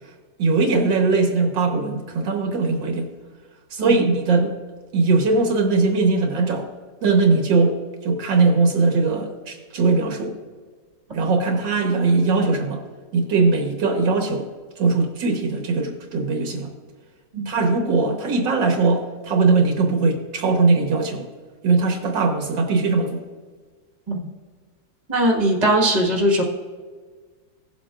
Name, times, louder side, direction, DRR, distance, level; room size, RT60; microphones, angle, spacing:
voice 1, 0.4-3.1 3.7-4.5 4.9-6.7 7.0-7.8 8.0-10.3 11.1-12.8 13.1-14.5 14.8-16.7 17.5-21.3 21.6-23.2, right 3 dB, 80° right, 2 dB, 1.9 m, -20 dB
voice 2, 25.1-26.4, right 1 dB, 25° right, -1 dB, 1.6 m, -20 dB
16.5 x 7.5 x 2.5 m, 1.5 s
omnidirectional pair, 2.0 m